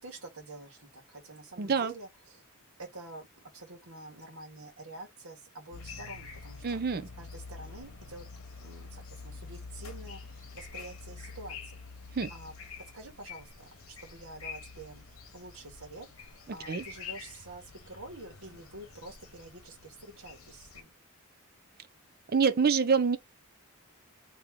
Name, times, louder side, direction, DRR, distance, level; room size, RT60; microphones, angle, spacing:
voice 1, 0.0-2.4 2.8-6.8 7.2-8.3 8.6-11.8 12.3-12.5 12.9-15.0 15.3-20.9, right 2 dB, 80° right, 1.5 m, -47 dB
voice 2, 1.6-1.9 6.6-7.1 12.1-12.3 16.7-16.8 22.3-23.2, right 5 dB, 45° right, 0.5 m, -26 dB
sound 1, 5.7-20.8, left 5 dB, 75° left, 1.0 m, -47 dB
3.0 x 2.9 x 3.6 m
head